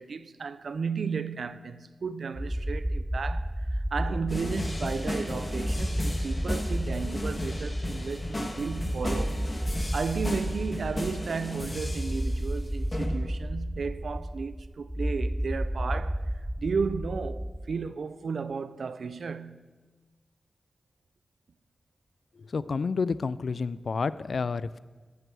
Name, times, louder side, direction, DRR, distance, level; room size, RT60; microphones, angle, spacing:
voice 1, 0.0-9.5 9.9-19.7, right 5 dB, 80° right, 0.4 m, -34 dB
sound 1, 2.3-17.9, equal, 5° right, 0.3 m, -32 dB
sound 2, 4.3-12.5 12.9-13.1, left 1 dB, 35° left, 1.6 m, -35 dB
voice 2, 22.5-24.8, left 4 dB, 75° left, 0.3 m, -29 dB
13.5 x 6.7 x 4.6 m
cardioid pair, 50°, 0 cm